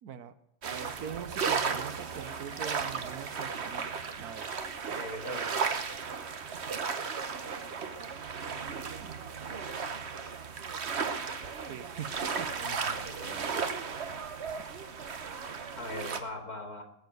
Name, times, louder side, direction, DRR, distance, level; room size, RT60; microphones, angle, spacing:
voice 1, 0.0-0.3 0.7-4.5 9.0-9.2 11.7-12.5, right 8 dB, 85° right, 12 dB, 1.5 m, -42 dB
sound 1, 0.6-16.2, right 5 dB, 50° right, 1.3 m, -35 dB
voice 2, 4.9-5.5 12.6-13.7 15.8-16.8, left 1 dB, 80° left, 4 dB, 3.0 m, -41 dB
20.0 x 7.0 x 8.0 m, 0.82 s
omnidirectional pair, 1.6 m